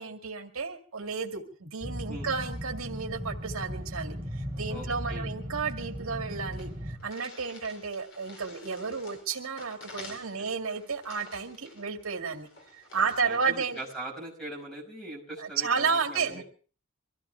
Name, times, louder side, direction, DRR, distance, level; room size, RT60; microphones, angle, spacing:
voice 1, 0.0-12.5 12.8-13.8 15.4-16.4, right 5 dB, 90° right, 3 dB, 2.2 m, -32 dB
sound 1, 1.8-7.0, equal, 15° right, 3.5 m, -37 dB
voice 2, 4.7-5.3 10.1-10.2 13.0-16.4, right 1 dB, 5° left, 0 dB, 5.5 m, -41 dB
sound 2, 6.2-6.3 6.5-14.0, left 2 dB, 65° left, 4.0 m, -50 dB
24.5 x 15.0 x 3.4 m, 0.39 s
head